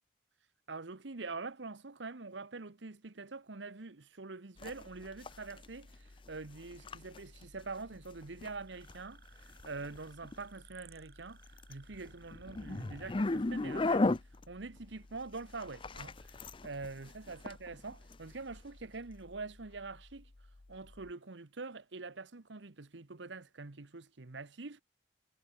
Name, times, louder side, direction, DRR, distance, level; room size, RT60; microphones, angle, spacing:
voice 1, 0.7-20.3 20.7-24.8, right 3 dB, 80° right, 1.2 m, -45 dB
sound 1, 4.6-21.1, left 2 dB, 30° left, 0.5 m, -40 dB
sound 2, 8.7-13.5, right 8 dB, 55° right, 4.3 m, -62 dB
head